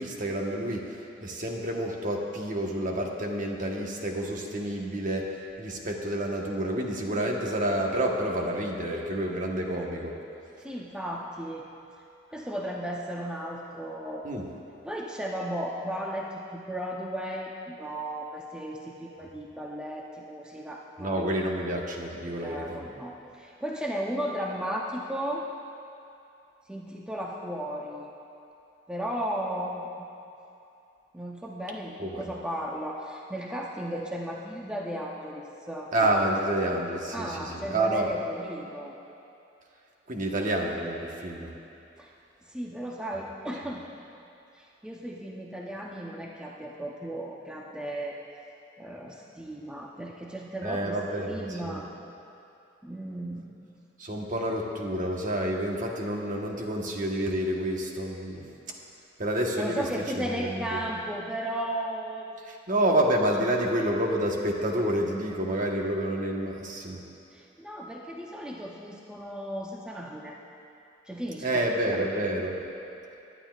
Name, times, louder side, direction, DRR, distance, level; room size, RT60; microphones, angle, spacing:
voice 1, 0.0-5.2 5.6-10.1 14.2-14.4 21.0-22.8 32.0-32.3 35.9-38.1 40.1-41.5 50.6-51.8 54.0-58.4 59.2-59.9 60.2-60.8 62.5-67.0 71.4-72.6, right 1 dB, 45° right, 0 dB, 1.2 m, -29 dB
voice 2, 10.6-11.6 12.3-14.3 14.8-21.2 22.3-25.4 26.7-28.1 28.9-30.1 31.1-35.9 37.1-39.0 42.0-42.1 42.5-43.8 44.5-48.2 48.8-51.9 52.8-53.5 59.6-62.3 62.7-62.8 67.3-70.4 71.1-72.0, equal, 5° right, -3 dB, 0.7 m, -35 dB
20.5 x 9.9 x 2.4 m, 2.7 s
head